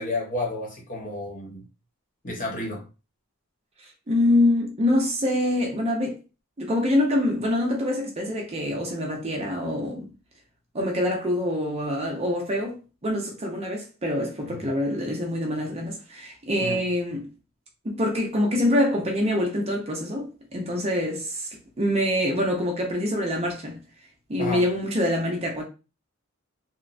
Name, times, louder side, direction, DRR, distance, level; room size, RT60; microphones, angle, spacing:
voice 1, 0.0-1.7 2.2-2.8 14.4-14.7 16.6-16.8 24.4-24.7, left 2 dB, 40° left, 1.0 m, -31 dB
voice 2, 4.1-6.2 6.6-10.1 10.7-17.2 17.8-21.5 21.8-23.8 24.3-25.6, left 1 dB, 30° right, 0.6 m, -25 dB
3.0 x 2.1 x 2.5 m
head